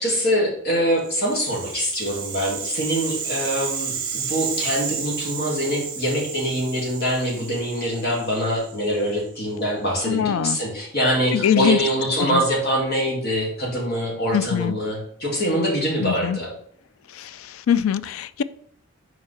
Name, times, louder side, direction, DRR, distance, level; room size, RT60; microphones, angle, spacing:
voice 1, 0.0-16.5, equal, 50° left, -2 dB, 2.2 m, -24 dB
Rattle (instrument), 1.0-9.2, right 6 dB, 45° right, 1.6 m, -32 dB
voice 2, 10.1-10.6 11.3-11.8 12.2-12.4 14.3-14.7 16.0-16.4 17.2-17.3 17.7-18.4, left 8 dB, 75° left, 16 dB, 0.3 m, -22 dB
5.7 x 4.6 x 4.1 m, 0.63 s
head